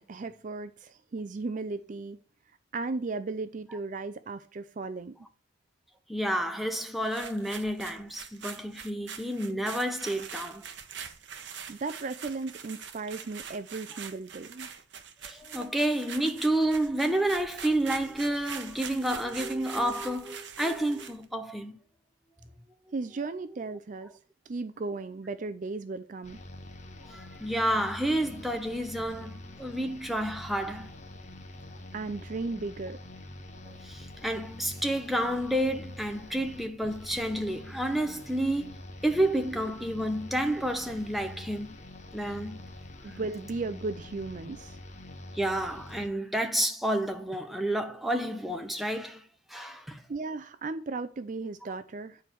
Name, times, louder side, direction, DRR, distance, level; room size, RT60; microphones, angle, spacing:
voice 1, 0.0-2.2 2.7-5.2 11.7-14.7 22.9-24.1 24.5-26.4 31.9-33.0 43.0-44.8 50.1-52.2, right 3 dB, 40° right, 0.4 m, -36 dB
voice 2, 6.1-10.6 15.2-21.8 27.1-30.9 33.6-41.8 42.1-42.6 45.3-49.2 49.5-50.0, right 1 dB, ahead, 0.8 m, -30 dB
sound 1, 7.0-21.2, right 7 dB, 55° right, 0.9 m, -43 dB
sound 2, 26.2-46.1, left 1 dB, 35° left, 1.0 m, -46 dB
9.4 x 4.5 x 6.8 m
head